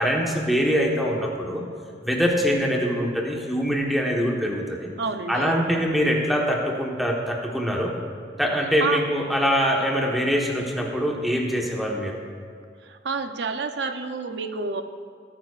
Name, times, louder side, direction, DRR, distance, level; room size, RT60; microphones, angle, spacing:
voice 1, 0.0-1.6 2.0-4.9 5.3-8.0 8.4-12.2, equal, ahead, -1 dB, 1.2 m, -23 dB
voice 2, 5.0-5.6 8.8-9.0 12.8-14.8, right 4 dB, 75° right, 7 dB, 0.6 m, -29 dB
18.0 x 9.4 x 2.4 m, 2.2 s
head